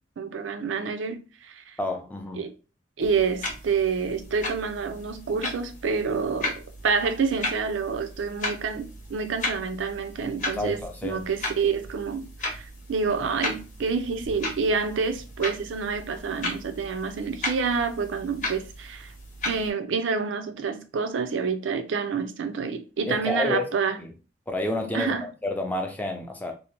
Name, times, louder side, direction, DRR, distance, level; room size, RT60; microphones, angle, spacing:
voice 1, 0.2-1.8 2.3-2.5 3.0-19.1 19.4-24.0 24.9-25.3, right 5 dB, 90° right, 0.4 m, -28 dB
voice 2, 1.8-2.5 10.6-11.2 23.1-23.7 24.0-24.1 24.5-25.1 25.4-26.5, left 2 dB, 10° left, 0.4 m, -29 dB
sound 1, 3.0-19.7, left 2 dB, 40° left, 0.8 m, -36 dB
2.7 x 2.0 x 2.8 m
head